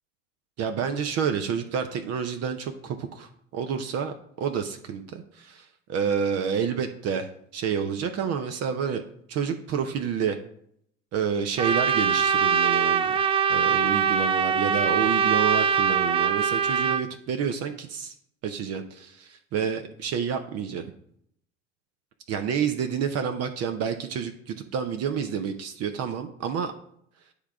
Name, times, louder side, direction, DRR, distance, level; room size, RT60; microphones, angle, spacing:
voice 1, 0.6-9.0 9.3-10.4 11.1-18.1 18.4-20.8 22.3-26.7, right 7 dB, 40° right, 7 dB, 0.7 m, -29 dB
Trumpet, 11.6-17.0, right 7 dB, 15° right, 0.3 m, -23 dB
9.8 x 3.6 x 4.7 m, 0.69 s
figure-of-eight pair, 65°, 37 cm